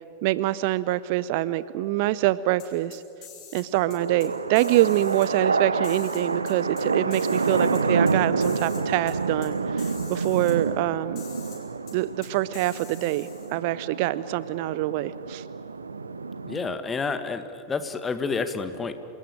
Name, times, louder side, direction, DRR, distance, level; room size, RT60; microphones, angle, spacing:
voice 1, 0.2-3.0 3.5-11.2 11.9-15.4, right 16 dB, 50° right, 18 dB, 0.6 m, -25 dB
sound 1, 2.6-3.6 3.9-4.3 4.6-5.3 5.8-6.8 7.1-8.1 8.4-8.8 9.1-9.2 9.4-9.5 9.8-10.5 11.2-11.6 11.9-12.0 12.2-13.5, left 7 dB, 35° left, 6.2 m, -46 dB
sound 2, 3.7-16.7, right 4 dB, 75° right, 0.8 m, -28 dB
voice 2, 16.4-18.9, left 4 dB, 15° left, 10 dB, 1.7 m, -29 dB
28.0 x 19.0 x 9.0 m, 2.7 s
figure-of-eight pair, 90°, 0 cm